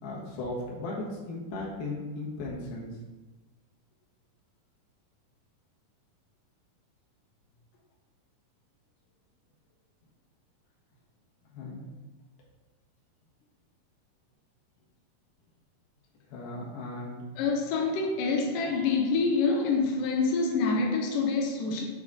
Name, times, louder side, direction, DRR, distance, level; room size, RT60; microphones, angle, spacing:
voice 1, 0.0-2.9 11.5-11.9 16.3-17.2, left 2 dB, 90° left, -5 dB, 3.4 m, -36 dB
voice 2, 17.4-21.8, left 4 dB, 70° left, 0 dB, 2.3 m, -26 dB
8.2 x 3.7 x 4.0 m, 1.2 s
omnidirectional pair, 4.2 m